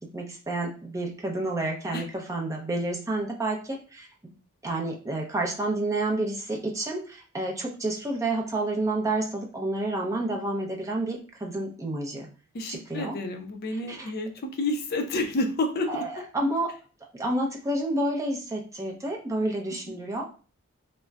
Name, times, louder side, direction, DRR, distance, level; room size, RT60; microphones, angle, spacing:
voice 1, 0.1-4.1 4.6-12.3 12.7-13.2 13.9-14.1 15.9-16.7 17.1-20.2, right 2 dB, 15° right, 0 dB, 0.5 m, -29 dB
voice 2, 12.5-16.0 19.9-20.0, left 2 dB, 45° left, 5 dB, 0.4 m, -29 dB
3.6 x 2.1 x 2.2 m, 0.37 s
head